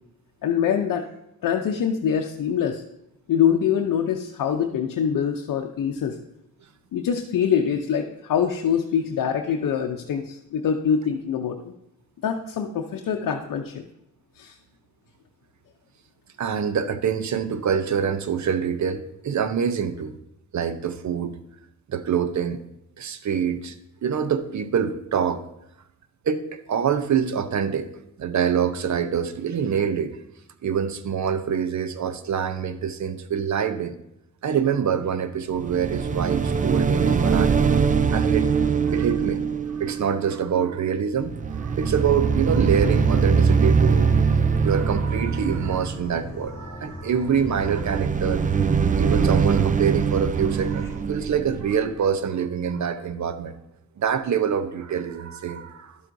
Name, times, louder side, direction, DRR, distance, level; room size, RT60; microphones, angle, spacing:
voice 1, 0.4-1.0 1.4-2.8 3.3-6.2 6.9-11.7 12.2-13.8 14.4-14.5, left 8 dB, 80° left, 3 dB, 0.6 m, -24 dB
voice 2, 16.4-20.1 20.5-21.4 21.9-22.6 23.0-23.8 24.0-25.4 26.2-27.9 28.2-30.2 30.6-34.0 34.4-37.7 38.1-38.5 38.9-39.4 39.7-44.1 44.6-48.4 49.0-53.5 54.0-56.0, right 7 dB, 60° right, 11 dB, 0.7 m, -25 dB
sound 1, 35.6-40.9 41.2-46.4 47.4-52.2, right 5 dB, 25° right, 0.4 m, -22 dB
sound 2, 42.5-51.0, left 1 dB, 10° left, 3.5 m, -38 dB
11.5 x 7.4 x 2.6 m, 0.83 s
cardioid pair, 95°, 32 cm